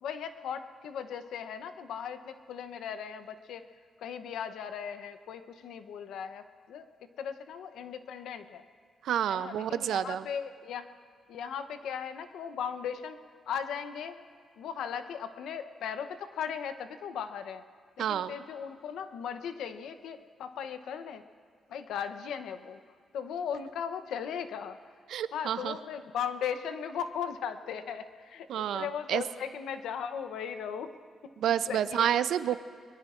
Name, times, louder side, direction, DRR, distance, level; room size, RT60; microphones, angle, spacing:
voice 1, 0.0-3.7 4.0-6.9 7.2-8.7 9.3-10.9 11.3-13.2 13.5-14.2 14.6-17.6 18.0-21.2 21.7-22.8 23.1-24.8 25.3-30.9 31.7-32.1, left 7 dB, 90° left, 10 dB, 0.7 m, -37 dB
voice 2, 9.0-10.3 18.0-18.3 25.1-25.7 28.5-29.2 31.4-32.6, right 10 dB, 80° right, 13 dB, 0.5 m, -29 dB
22.0 x 22.0 x 2.5 m, 2.1 s
cardioid pair, 120°, 0 cm